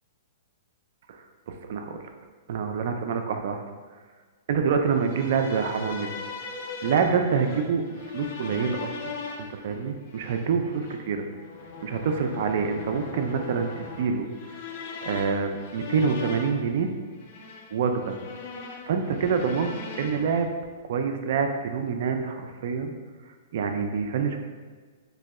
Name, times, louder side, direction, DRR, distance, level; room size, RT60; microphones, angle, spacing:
voice 1, 1.1-2.1 2.5-3.6 4.5-6.1 6.8-11.3 11.8-14.6 15.0-16.9 17.7-18.2 18.9-19.7 20.0-20.5 20.9-22.9 23.5-24.4, right 6 dB, 65° right, 5 dB, 0.4 m, -26 dB
sound 1, 4.9-20.4, left 4 dB, 55° left, 0.4 m, -40 dB
4.0 x 2.7 x 2.3 m, 1.5 s
hypercardioid pair, 130°, 0 cm